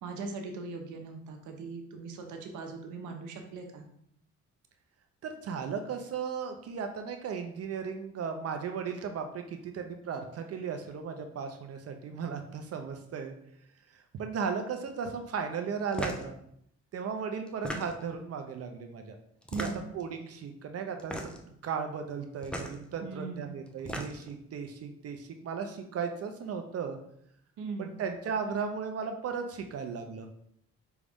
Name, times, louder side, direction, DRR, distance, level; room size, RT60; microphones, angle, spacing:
voice 1, 0.0-3.9 19.5-19.9 23.0-23.5 27.6-28.0, right 3 dB, 85° right, 4 dB, 0.8 m, -40 dB
voice 2, 5.2-13.3 13.9-16.4 16.9-19.2 19.6-19.7 19.9-21.3 21.6-27.0 27.8-30.3, right 6 dB, 55° right, 5 dB, 0.5 m, -36 dB
sound 1, 15.9-16.3 17.5-18.2 19.4-20.0 21.0-21.5 22.4-22.7 23.7-24.3, equal, 5° left, 0.5 m, -37 dB
5.2 x 2.4 x 3.4 m, 0.71 s
cardioid pair, 90°, 30 cm